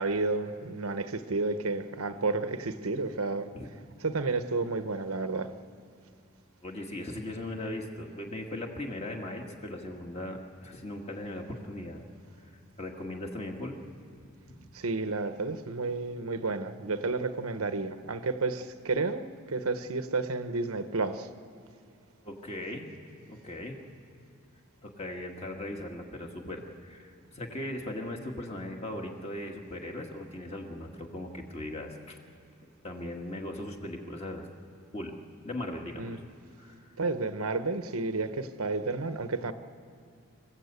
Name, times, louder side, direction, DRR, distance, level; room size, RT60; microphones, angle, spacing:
voice 1, 0.0-3.5 4.0-5.5 14.7-21.3 36.0-36.2 37.0-39.5, right 3 dB, 80° right, 0.9 m, -31 dB
voice 2, 6.6-12.0 12.8-13.8 22.2-22.9 23.3-23.8 24.8-32.2 32.8-34.5 34.9-35.2 35.4-36.2 36.6-36.9, left 1 dB, 30° left, 1.9 m, -38 dB
26.5 x 15.5 x 8.2 m
head